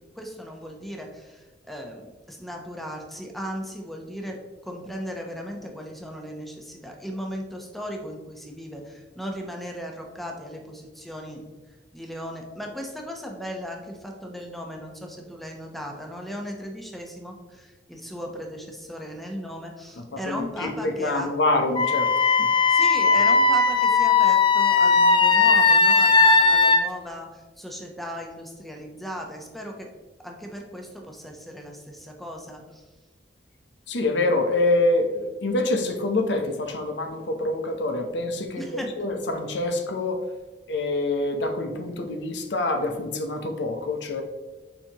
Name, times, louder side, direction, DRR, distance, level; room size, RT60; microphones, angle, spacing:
voice 1, 0.2-11.4 11.9-21.3 22.7-29.9 30.2-32.8 38.6-38.9, equal, ahead, 1 dB, 0.8 m, -37 dB
voice 2, 20.1-22.1 22.4-22.5 33.9-40.2 40.7-44.2, left 2 dB, 80° left, 5 dB, 0.8 m, -26 dB
Wind instrument woodwind instrument, 21.7-26.8, left 4 dB, 30° left, 0.4 m, -18 dB
7.1 x 5.2 x 2.9 m, 1.3 s
head